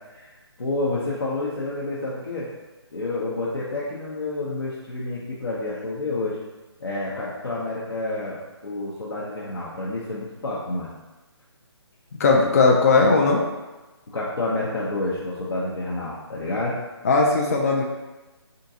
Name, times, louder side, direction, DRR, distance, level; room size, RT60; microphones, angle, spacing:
voice 1, 0.6-2.5 2.9-6.4 6.8-10.9 14.1-16.8, left 2 dB, 65° left, -7 dB, 0.7 m, -29 dB
voice 2, 12.2-13.4 17.0-17.8, left 3 dB, 35° left, 0 dB, 0.4 m, -18 dB
3.6 x 2.6 x 2.7 m, 1.1 s
figure-of-eight pair, 150°, 14 cm